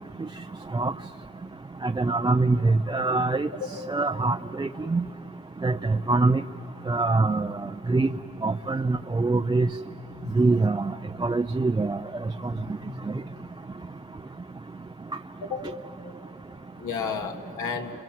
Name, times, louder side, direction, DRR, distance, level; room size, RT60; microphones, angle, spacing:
voice 1, 1.8-3.5 3.9-5.0 5.6-6.4 6.9-7.5 7.9-8.1 8.4-9.7 10.4-10.9 11.2-12.0, right 3 dB, 15° right, 5 dB, 0.5 m, -23 dB
voice 2, 12.4-13.5 15.4-15.6 16.8-17.9, left 5 dB, 80° left, 3 dB, 2.5 m, -34 dB
29.0 x 26.5 x 7.7 m, 3.0 s
cardioid pair, 90°, 30 cm